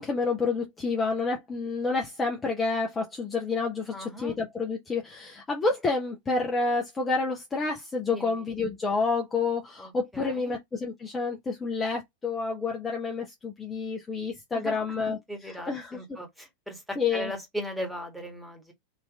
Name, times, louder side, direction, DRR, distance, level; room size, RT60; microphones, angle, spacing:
voice 1, 0.0-15.2 15.4-16.0 17.0-17.3, left 4 dB, 15° left, 0.9 m, -29 dB
voice 2, 3.9-4.3 8.1-8.4 9.8-10.5 14.5-14.8 15.0-18.7, equal, ahead, 1.6 m, -38 dB
3.3 x 2.9 x 3.5 m
figure-of-eight pair, 90°, 0 cm